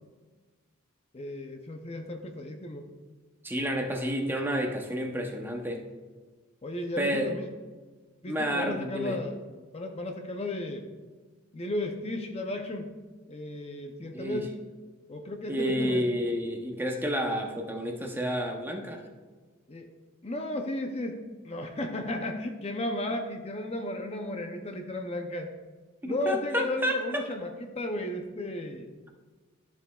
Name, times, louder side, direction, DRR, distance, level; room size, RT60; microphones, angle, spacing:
voice 1, 1.1-2.9 6.6-7.5 8.2-9.4 9.7-10.9 11.5-12.9 13.3-14.5 15.1-16.0 19.7-19.9 20.2-25.5 26.1-28.9, left 1 dB, 30° left, 4 dB, 0.6 m, -34 dB
voice 2, 3.4-5.8 7.0-7.3 8.3-9.2 14.1-14.4 15.5-19.0 26.0-27.2, equal, 10° right, 2 dB, 0.7 m, -30 dB
12.5 x 7.0 x 2.3 m, 1.4 s
head